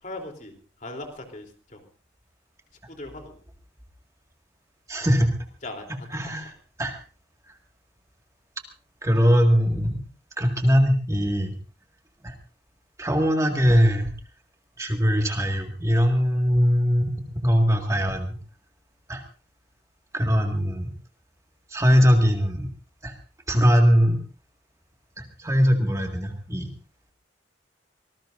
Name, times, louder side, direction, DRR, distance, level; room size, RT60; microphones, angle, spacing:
voice 1, 0.0-1.8 2.9-3.4 5.0-5.1 5.6-6.1, left 2 dB, 40° left, 3 dB, 3.4 m, -39 dB
voice 2, 4.9-5.3 6.1-6.5 6.8-7.0 9.0-10.0 10.4-11.5 12.2-12.4 13.0-14.1 14.8-18.4 19.1-19.2 20.1-20.9 21.7-22.7 23.0-23.1 23.5-24.2 25.2-26.7, equal, 15° right, 2 dB, 1.9 m, -21 dB
25.0 x 19.5 x 2.6 m, 0.36 s
head